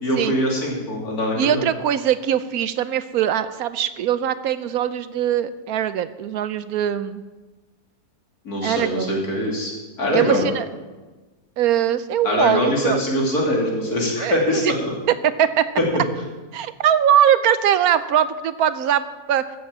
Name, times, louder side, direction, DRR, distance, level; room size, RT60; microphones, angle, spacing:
voice 1, 0.0-1.6 8.4-9.7 10.0-10.5 12.2-14.9, left 1 dB, 70° left, -2 dB, 3.3 m, -22 dB
voice 2, 1.4-7.2 8.6-9.2 10.1-10.6 11.6-13.0 14.2-14.7 15.2-15.7 16.5-19.0 19.3-19.4, right 10 dB, 75° right, 14 dB, 1.1 m, -21 dB
14.0 x 7.3 x 7.4 m, 1.2 s
omnidirectional pair, 1.6 m